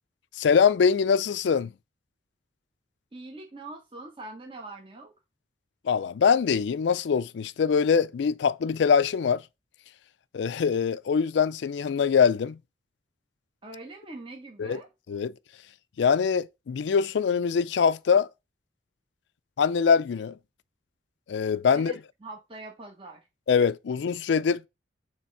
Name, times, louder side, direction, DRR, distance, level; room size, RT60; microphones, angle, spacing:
voice 1, 0.4-1.7 5.8-9.4 10.3-12.6 14.6-14.8 15.1-15.3 16.0-18.3 19.6-20.4 21.3-21.9 23.5-24.7, left 6 dB, 70° left, 0.4 m, -23 dB
voice 2, 3.1-5.1 13.6-14.9 21.7-23.2, right 2 dB, 25° right, 0.9 m, -43 dB
6.9 x 3.3 x 4.6 m
head